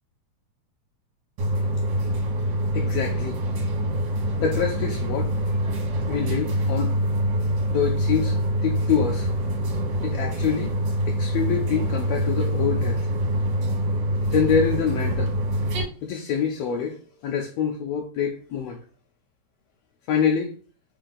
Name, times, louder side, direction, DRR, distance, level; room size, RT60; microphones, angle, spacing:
sound 1, 1.4-15.8, equal, 65° right, 2.1 m, -25 dB
voice 1, 2.7-3.4 4.4-5.3 6.1-7.0 7.7-9.3 10.0-10.7 11.1-13.1 14.3-15.3 16.0-18.8 20.1-20.5, left 7 dB, 90° left, 1.4 m, -26 dB
4.5 x 2.5 x 3.8 m
omnidirectional pair, 3.4 m